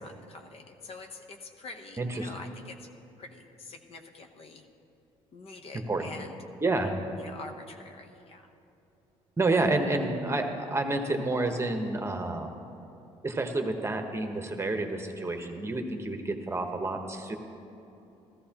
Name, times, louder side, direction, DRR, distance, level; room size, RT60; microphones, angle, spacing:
voice 1, 0.0-2.8 3.2-4.6 5.3-6.3 6.7-6.9 7.2-8.4, left 3 dB, 50° left, 5 dB, 1.0 m, -46 dB
voice 2, 2.0-2.4 5.7-6.1 6.6-6.9 9.4-12.5 13.2-17.4, right 2 dB, 20° right, 4 dB, 1.1 m, -29 dB
14.0 x 14.0 x 3.0 m, 2.9 s
supercardioid pair, 80°, 13 cm